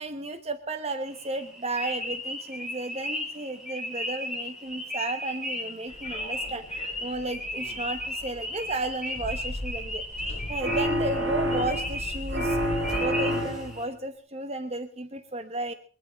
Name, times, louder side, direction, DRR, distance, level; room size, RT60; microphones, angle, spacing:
voice 1, 0.0-6.6 7.0-10.0 10.5-12.6 12.9-15.7, right 2 dB, 35° right, 8 dB, 1.0 m, -33 dB
sound 1, 1.1-13.9, left 1 dB, 5° right, 6.7 m, -35 dB
sound 2, 5.9-13.0, left 1 dB, 30° left, 3.4 m, -39 dB
sound 3, 10.6-12.0 12.3-13.8, equal, 80° right, 3.6 m, -28 dB
23.0 x 9.8 x 5.2 m, 0.42 s
head